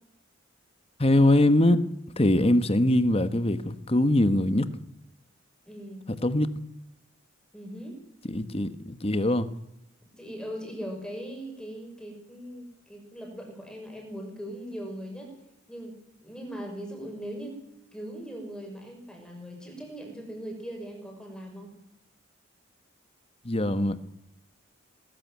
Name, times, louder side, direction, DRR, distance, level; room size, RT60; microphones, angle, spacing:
voice 1, 1.0-1.8 2.2-4.7 6.2-6.5 8.3-9.5 23.4-23.9, left 1 dB, 30° left, 1.2 m, -22 dB
voice 2, 5.7-6.0 7.5-8.0 10.2-15.3 15.7-17.6 17.9-21.7, equal, 5° left, 6.1 m, -40 dB
20.5 x 14.0 x 9.3 m
head